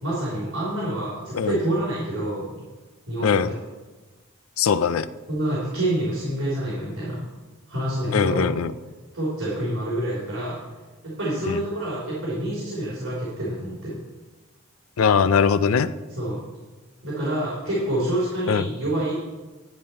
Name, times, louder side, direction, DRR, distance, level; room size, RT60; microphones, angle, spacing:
voice 1, 0.0-2.6 3.1-3.4 5.3-7.2 7.7-8.4 9.1-10.6 11.0-14.0 16.2-16.4 17.0-19.2, right 1 dB, 70° right, -8 dB, 3.3 m, -27 dB
voice 2, 3.2-3.5 4.6-5.1 8.1-8.7 11.5-11.6 15.0-15.9 18.5-18.7, left 6 dB, 85° left, 15 dB, 0.5 m, -21 dB
10.5 x 9.5 x 4.3 m, 1.2 s
head